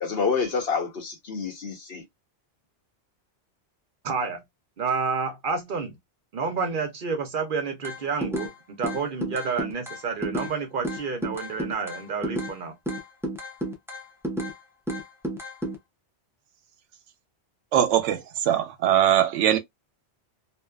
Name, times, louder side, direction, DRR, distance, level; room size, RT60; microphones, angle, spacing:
voice 1, 0.0-2.0, left 5 dB, 55° left, 1.1 m, -28 dB
voice 2, 4.0-4.4 4.8-6.0 6.3-12.7, right 5 dB, 55° right, 0.7 m, -29 dB
sound 1, 7.8-8.5 8.8-10.5 10.8-12.6 12.9-14.6 14.9-15.8, right 1 dB, 5° right, 0.3 m, -31 dB
voice 3, 17.7-19.6, right 10 dB, 85° right, 0.9 m, -21 dB
2.7 x 2.3 x 2.2 m
omnidirectional pair, 1.2 m